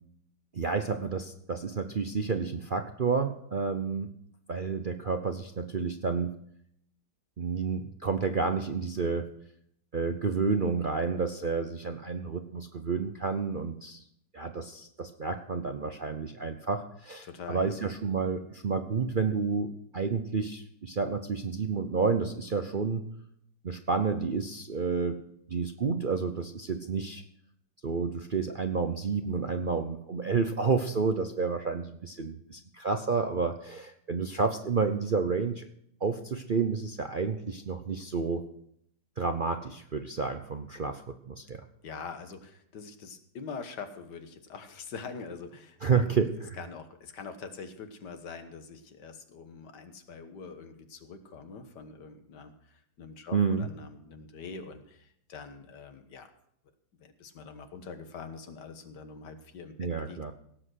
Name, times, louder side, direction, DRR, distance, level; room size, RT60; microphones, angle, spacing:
voice 1, 0.5-4.1 4.5-6.4 7.4-9.3 9.9-14.0 14.3-23.0 23.6-25.2 25.5-27.2 27.8-35.7 36.0-38.5 39.2-41.6 45.8-46.6 53.3-53.6 59.8-60.3, right 5 dB, 50° right, 7 dB, 0.6 m, -30 dB
voice 2, 17.2-17.7 41.8-46.2 46.6-56.3 57.0-60.3, left 5 dB, 80° left, 8 dB, 1.9 m, -44 dB
17.5 x 8.0 x 6.4 m, 0.70 s
omnidirectional pair, 1.8 m